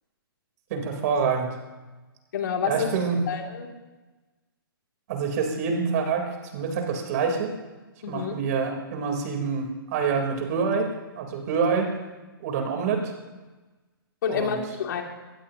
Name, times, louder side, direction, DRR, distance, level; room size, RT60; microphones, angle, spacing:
voice 1, 0.7-1.6 2.6-3.2 5.1-7.5 8.1-11.9 12.4-13.1 14.3-14.6, right 5 dB, 45° right, 2 dB, 3.7 m, -26 dB
voice 2, 2.3-3.0 3.3-3.7 8.0-8.4 14.2-15.0, left 7 dB, 55° left, 2 dB, 2.8 m, -28 dB
22.0 x 19.5 x 2.9 m, 1.2 s
hypercardioid pair, 130°, 12 cm